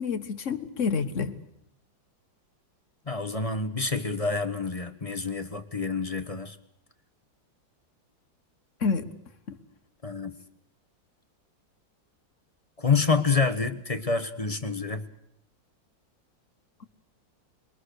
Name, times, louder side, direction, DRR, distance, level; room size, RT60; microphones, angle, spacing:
voice 1, 0.0-1.4 8.8-9.1 9.5-9.6, left 5 dB, 45° left, 9 dB, 1.6 m, -28 dB
voice 2, 3.1-6.6 10.0-10.4 12.8-15.1, left 4 dB, 25° left, 9 dB, 1.0 m, -27 dB
29.0 x 22.5 x 6.6 m, 0.73 s
omnidirectional pair, 2.0 m